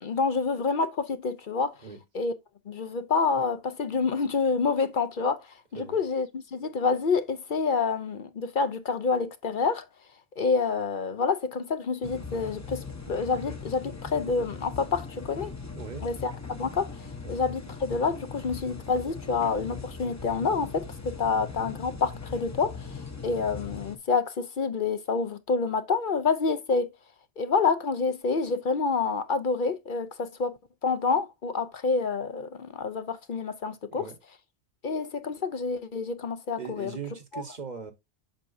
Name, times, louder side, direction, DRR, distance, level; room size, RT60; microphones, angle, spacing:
voice 1, 0.0-1.8 2.1-2.3 2.7-5.5 5.7-9.9 10.4-15.5 16.0-26.9 27.4-30.5 30.8-34.1 34.8-36.9 37.3-37.4, left 4 dB, 50° left, 0.8 m, -28 dB
sound 1, 12.0-24.0, left 4 dB, 15° left, 0.8 m, -40 dB
voice 2, 15.7-16.1 17.2-17.4 33.9-34.2 36.6-37.9, right 6 dB, 40° right, 1.2 m, -39 dB
7.7 x 6.0 x 2.6 m
omnidirectional pair, 1.2 m